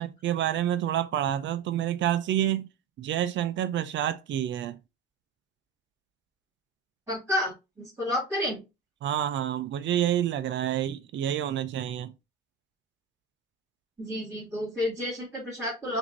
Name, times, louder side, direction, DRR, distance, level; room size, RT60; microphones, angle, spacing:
voice 1, 0.0-2.7 3.0-4.8 9.0-12.1, right 11 dB, 70° right, 0.5 m, -28 dB
voice 2, 7.1-7.5 7.8-8.6 14.0-16.0, left 1 dB, 10° right, 2.4 m, -30 dB
5.8 x 2.7 x 2.6 m
cardioid pair, 90°, 20 cm